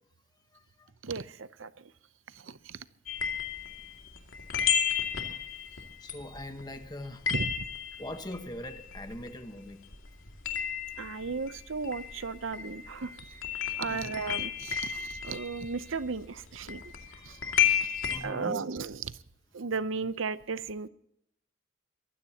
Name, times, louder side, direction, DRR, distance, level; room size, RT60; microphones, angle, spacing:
voice 1, 1.0-1.9 2.3-2.9 7.3-7.7 11.0-16.9 17.2-19.2 19.5-20.9, right 4 dB, 75° right, 15 dB, 0.7 m, -36 dB
sound 1, 3.1-9.7 9.9-18.2, left 8 dB, 85° left, 2.4 m, -33 dB
voice 2, 6.0-7.3 8.0-9.8 13.9-14.1 17.2-17.8 18.0-18.6, left 1 dB, 20° left, 7 dB, 1.2 m, -42 dB
22.5 x 16.0 x 2.9 m, 0.77 s
head